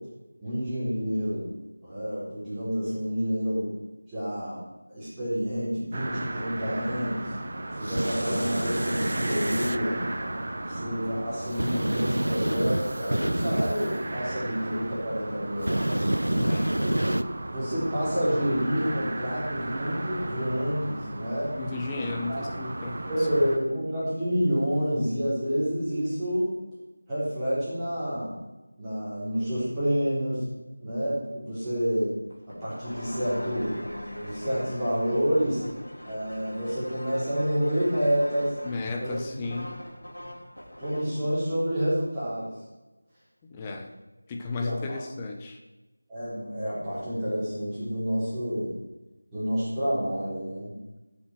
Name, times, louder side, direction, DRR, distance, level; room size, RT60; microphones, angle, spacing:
voice 1, 0.4-1.5 1.8-3.7 4.1-4.6 4.9-7.3 7.8-10.0 10.7-16.0 16.7-16.9 17.5-21.6 22.3-22.4 23.1-26.5 27.1-28.3 28.8-30.5 30.8-32.2 32.6-33.8 34.2-35.6 36.0-38.6 39.0-39.4 40.8-42.5 44.6-45.0 46.1-48.7 49.3-50.7, equal, 5° right, -15 dB, 4.3 m, -28 dB
sound 1, 5.9-23.6, right 1 dB, 40° right, 1.2 m, -35 dB
sound 2, 7.9-9.8 11.6-13.9 15.6-17.2, right 1 dB, 75° right, 0.6 m, -28 dB
voice 2, 16.3-16.8 21.5-23.5 38.6-39.7 43.5-43.9 44.3-45.6, left 3 dB, 15° left, 2 dB, 0.8 m, -34 dB
sound 3, 32.3-41.2, equal, 85° left, 4.0 m, -41 dB
14.0 x 7.3 x 4.8 m, 1.1 s
figure-of-eight pair, 170°, 0 cm